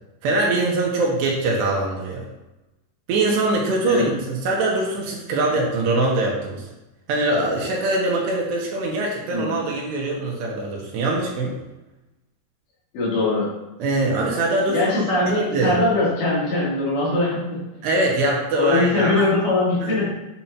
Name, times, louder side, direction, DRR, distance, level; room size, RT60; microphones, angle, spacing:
voice 1, 0.2-2.3 3.1-6.7 7.1-11.6 13.8-15.8 17.8-19.3 19.8-20.0, right 2 dB, 80° right, -2 dB, 3.4 m, -23 dB
voice 2, 12.9-13.5 14.7-17.6 18.6-20.0, left 2 dB, 80° left, -7 dB, 5.2 m, -21 dB
9.9 x 7.4 x 2.8 m, 0.99 s
omnidirectional pair, 4.9 m